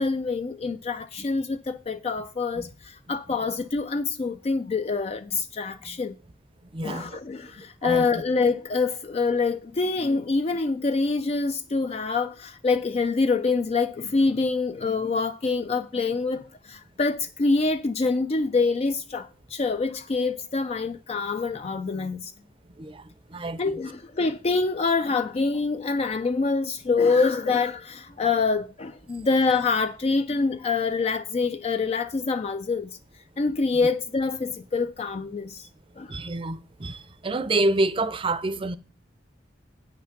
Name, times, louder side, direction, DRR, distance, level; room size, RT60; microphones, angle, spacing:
voice 1, 0.0-6.2 6.8-22.3 23.6-32.9 33.4-35.7 36.0-36.1, left 4 dB, 35° left, 0.4 m, -25 dB
voice 2, 6.7-7.2 7.8-8.2 22.8-23.7 36.1-38.8, right 2 dB, 30° right, 0.6 m, -28 dB
8.5 x 5.9 x 5.8 m
head